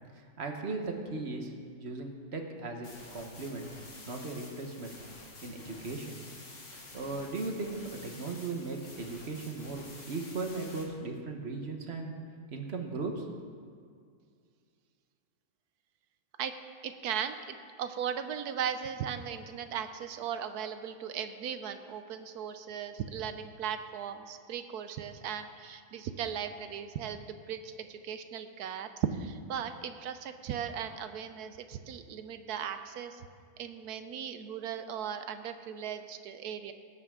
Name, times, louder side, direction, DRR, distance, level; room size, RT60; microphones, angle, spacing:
voice 1, 0.1-1.5 1.8-3.7 4.1-6.2 6.9-12.1 12.5-13.3, right 3 dB, 45° right, 3 dB, 1.3 m, -37 dB
sound 1, 2.8-10.8, left 2 dB, 50° left, 1.9 m, -50 dB
voice 2, 16.8-17.4 17.8-33.2 33.6-36.7, right 8 dB, 75° right, 9 dB, 1.1 m, -37 dB
18.0 x 8.6 x 3.7 m, 2.2 s
omnidirectional pair, 1.8 m